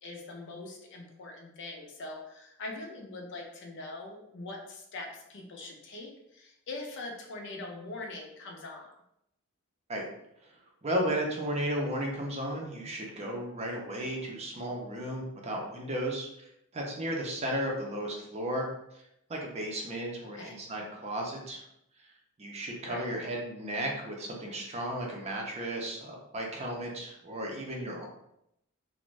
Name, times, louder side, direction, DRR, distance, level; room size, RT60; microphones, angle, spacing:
voice 1, 0.0-8.9 20.3-20.6 22.8-23.1, left 2 dB, 55° left, 1 dB, 0.5 m, -42 dB
voice 2, 10.8-16.5 16.7-18.7 19.3-21.6 22.4-28.1, right 1 dB, 30° right, -1 dB, 0.5 m, -34 dB
2.5 x 2.1 x 3.1 m, 0.80 s
head